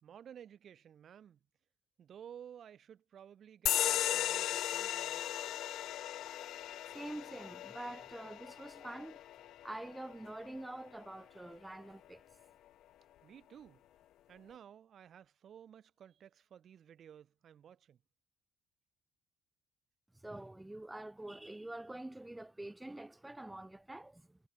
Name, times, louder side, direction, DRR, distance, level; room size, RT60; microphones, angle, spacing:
voice 1, 0.0-1.4 2.0-5.2 13.2-13.8 14.3-18.0, right 9 dB, 40° right, 2.1 m, -55 dB
sound 1, 3.7-10.7, left 13 dB, 60° left, 0.6 m, -37 dB
voice 2, 6.9-9.3 9.6-12.2 20.1-24.4, right 1 dB, 5° right, 1.1 m, -46 dB
cardioid pair, 155°, 0 cm